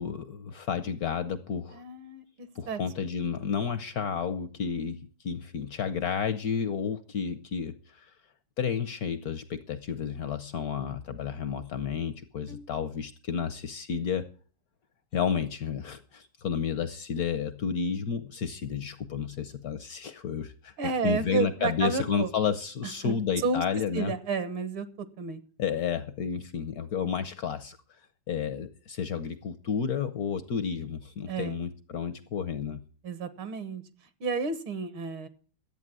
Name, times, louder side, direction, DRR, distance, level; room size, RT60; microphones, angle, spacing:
voice 1, 0.0-1.8 2.5-8.1 8.6-14.3 15.1-20.7 21.0-24.1 25.6-27.8 28.3-32.8, left 7 dB, 65° left, 0.9 m, -31 dB
voice 2, 1.7-2.8 12.5-12.7 20.8-22.3 23.0-23.1 23.4-23.6 23.9-25.4 31.3-31.6 33.0-33.8 34.2-35.3, right 5 dB, 70° right, 2.0 m, -31 dB
12.5 x 8.5 x 7.5 m
omnidirectional pair, 2.4 m